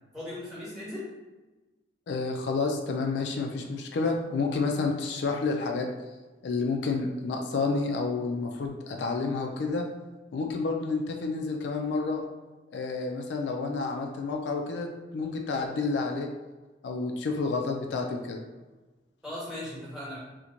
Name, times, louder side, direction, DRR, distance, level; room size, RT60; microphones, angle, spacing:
voice 1, 0.1-1.0 19.2-20.2, left 1 dB, 5° right, -8 dB, 1.1 m, -38 dB
voice 2, 2.1-5.9 6.4-9.8 10.3-12.3 12.7-16.3 16.8-18.4, left 4 dB, 70° left, 3 dB, 0.3 m, -30 dB
2.9 x 2.1 x 3.7 m, 1.2 s
head